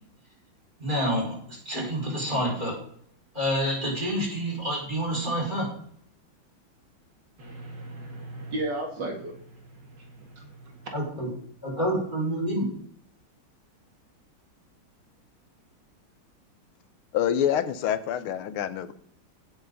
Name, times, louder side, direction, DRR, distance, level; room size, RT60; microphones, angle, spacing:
voice 1, 0.8-2.8 3.3-5.7 10.9-11.3 11.6-12.7, equal, 20° right, -2 dB, 5.6 m, -28 dB
voice 2, 7.4-10.9, right 2 dB, 60° right, 2 dB, 2.4 m, -36 dB
voice 3, 17.1-18.9, left 10 dB, 85° left, 12 dB, 1.7 m, -26 dB
17.0 x 7.2 x 4.0 m, 0.64 s
omnidirectional pair, 2.3 m